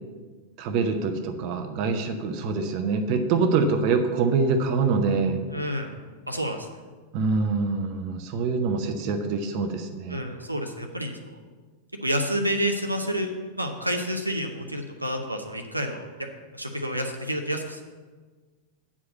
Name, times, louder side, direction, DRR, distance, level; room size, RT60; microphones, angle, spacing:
voice 1, 0.6-5.4 7.1-10.2, right 4 dB, 45° right, 7 dB, 0.8 m, -25 dB
voice 2, 5.5-5.9 6.3-6.7 10.1-11.4 12.0-13.3 13.6-16.1 16.5-17.8, equal, 85° right, 4 dB, 0.7 m, -29 dB
8.4 x 4.8 x 7.0 m, 1.4 s
figure-of-eight pair, 90°, 0 cm